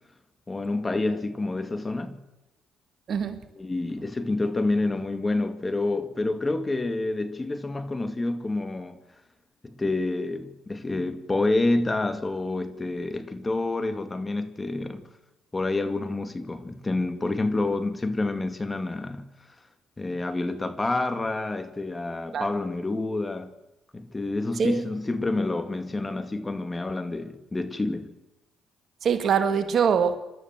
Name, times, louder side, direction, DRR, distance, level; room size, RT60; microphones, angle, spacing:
voice 1, 0.5-2.2 3.5-9.0 9.6-15.0 15.5-19.3 20.0-23.5 23.9-28.1, left 2 dB, 20° left, 2.4 m, -28 dB
voice 2, 3.1-3.4 22.3-22.5 24.6-24.8 29.0-30.2, right 7 dB, 55° right, 1.9 m, -23 dB
28.0 x 12.5 x 7.9 m
supercardioid pair, 65°, 0 cm